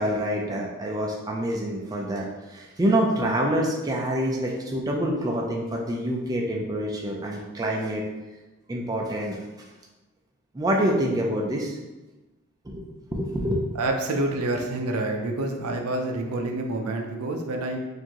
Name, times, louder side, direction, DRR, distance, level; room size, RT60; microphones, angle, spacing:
voice 1, 0.0-8.0 8.7-9.4 10.5-11.8 12.6-13.7, right 1 dB, 15° right, -1 dB, 0.4 m, -26 dB
voice 2, 13.7-17.8, right 2 dB, 75° right, 3 dB, 0.5 m, -27 dB
4.5 x 2.6 x 2.9 m, 1.1 s
head